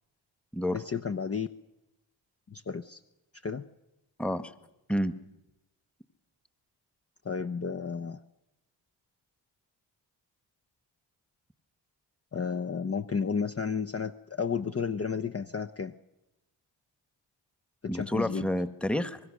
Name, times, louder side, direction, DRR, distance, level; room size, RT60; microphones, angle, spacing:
voice 1, 0.7-1.5 2.5-3.0 3.4-3.6 7.2-8.2 12.3-15.9 17.8-18.5, left 5 dB, 30° left, 9 dB, 0.9 m, -32 dB
voice 2, 4.2-4.5 4.9-5.1 17.9-19.2, left 1 dB, ahead, 12 dB, 1.4 m, -29 dB
24.5 x 21.5 x 6.5 m, 0.98 s
supercardioid pair, 40°, 48 cm